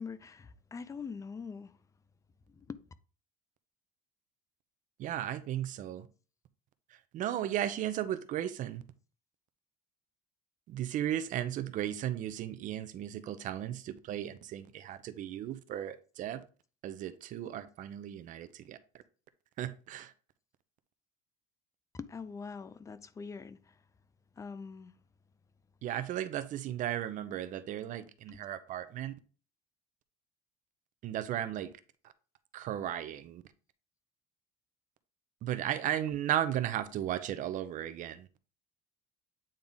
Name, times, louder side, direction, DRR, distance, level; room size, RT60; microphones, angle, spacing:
voice 1, 0.0-1.8 2.5-2.8 21.9-23.8 24.4-24.9 28.3-28.4 36.1-36.2, left 5 dB, 20° left, 0.5 m, -43 dB
voice 2, 5.0-6.1 7.1-8.8 10.7-16.4 16.8-18.8 19.6-20.1 25.8-29.1 31.0-31.7 32.5-33.4 35.4-38.4, right 11 dB, 50° right, 0.7 m, -35 dB
8.8 x 3.5 x 4.0 m
cardioid pair, 130°, 17 cm